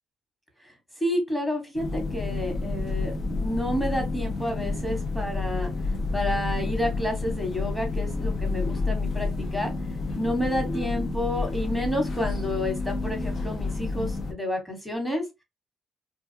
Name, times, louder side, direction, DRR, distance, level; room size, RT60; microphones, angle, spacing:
voice 1, 1.0-5.7 6.1-9.7 10.1-15.2, left 1 dB, 5° left, 1.2 m, -30 dB
sound 1, 1.8-14.3, left 3 dB, 55° left, 0.6 m, -29 dB
2.4 x 2.3 x 2.7 m
cardioid pair, 90°, 0 cm